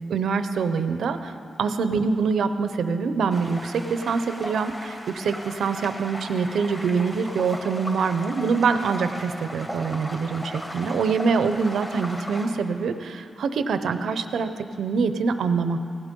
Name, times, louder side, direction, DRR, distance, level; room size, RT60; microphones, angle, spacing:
voice 1, 0.1-1.3 1.6-15.8, right 5 dB, 85° right, 10 dB, 0.7 m, -25 dB
sound 1, 3.3-12.5, equal, 10° left, 2.0 m, -37 dB
17.5 x 12.0 x 5.4 m, 2.5 s
wide cardioid pair, 120°, 0 cm